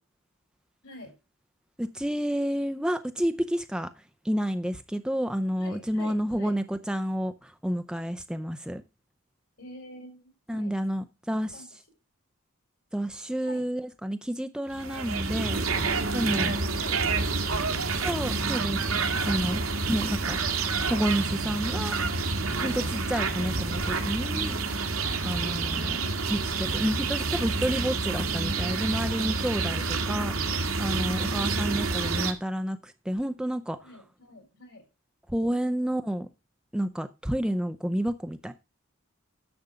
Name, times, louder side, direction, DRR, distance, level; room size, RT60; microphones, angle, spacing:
voice 1, 1.8-3.9 4.2-8.8 10.5-11.6 12.9-15.6 16.1-16.5 18.0-19.6 19.9-20.4 20.9-22.0 22.6-24.6 25.2-26.0 26.3-30.3 30.8-33.8 35.3-36.3 36.7-38.5, equal, 5° right, 0.5 m, -30 dB
voice 2, 5.6-6.5 9.6-10.7 11.5-11.7 13.4-13.6 15.4-15.6 16.3-18.7 19.6-19.8 23.3-23.5 25.5-26.3 29.7-30.5 33.8-34.8, left 1 dB, 65° left, 4.5 m, -47 dB
sound 1, 14.7-32.3, right 4 dB, 75° right, 1.7 m, -28 dB
10.5 x 7.0 x 5.0 m
head